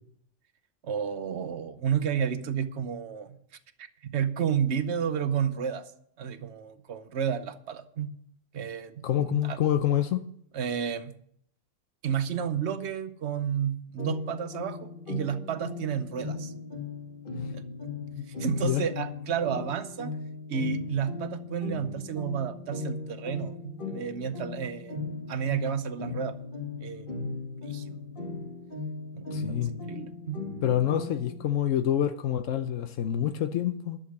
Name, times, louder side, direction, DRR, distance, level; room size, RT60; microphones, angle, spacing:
voice 1, 0.8-3.4 3.8-5.9 6.2-8.1 8.5-9.6 10.5-11.1 12.0-16.5 17.5-17.7 18.3-20.1 20.5-25.0 25.3-26.3 26.8-27.1 27.6-28.4 29.1-30.4, right 8 dB, 65° right, 1.1 m, -31 dB
voice 2, 9.0-10.2 18.2-18.3 18.6-18.8 29.3-29.7 30.6-34.0, left 11 dB, 85° left, 1.0 m, -27 dB
sound 1, 14.0-31.4, left 3 dB, 45° left, 1.8 m, -37 dB
11.5 x 6.8 x 6.5 m
omnidirectional pair, 1.3 m